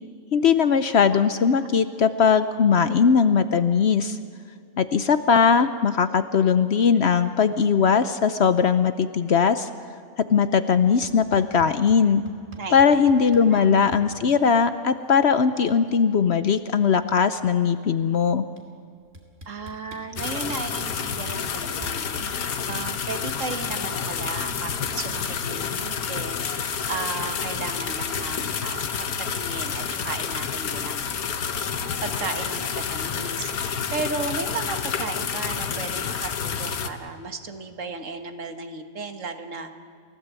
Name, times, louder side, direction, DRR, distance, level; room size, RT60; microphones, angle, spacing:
voice 1, 0.3-4.2 4.8-9.7 10.2-12.3 12.7-18.5, left 6 dB, 55° left, 11 dB, 0.9 m, -20 dB
sound 1, 11.0-12.0 12.3-14.0 15.3-15.4 15.6-16.0 16.3-17.7 18.6-18.7 19.1-21.9, right 1 dB, 45° right, 2.9 m, -43 dB
voice 2, 12.5-13.1 13.4-13.7 19.5-22.3 22.7-31.0 32.0-33.5 33.9-39.7, right 4 dB, 60° right, 7 dB, 1.8 m, -35 dB
sound 2, 20.2-36.9, left 7 dB, 90° left, 1.6 m, -29 dB
30.0 x 16.0 x 8.2 m, 2.2 s
omnidirectional pair, 1.5 m